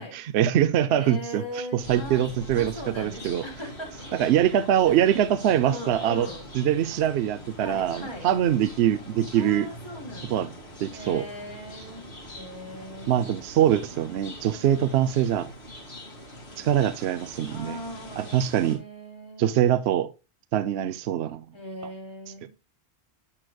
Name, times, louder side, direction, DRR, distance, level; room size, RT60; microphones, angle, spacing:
voice 1, 0.0-3.4 4.1-6.3 6.5-9.7 10.3-10.5 10.8-11.3 13.1-15.5 16.6-17.8 18.2-18.8 19.4-20.1 20.5-21.4, right 10 dB, 70° right, 0.8 m, -23 dB
voice 2, 0.9-2.3 2.5-4.3 4.9-5.0 5.6-6.4 7.6-8.3 9.3-10.5 10.9-13.4 17.5-19.7 21.5-22.5, equal, 25° left, 2.9 m, -39 dB
sound 1, 1.8-18.8, equal, 65° left, 2.4 m, -43 dB
9.9 x 6.5 x 2.3 m
omnidirectional pair, 1.2 m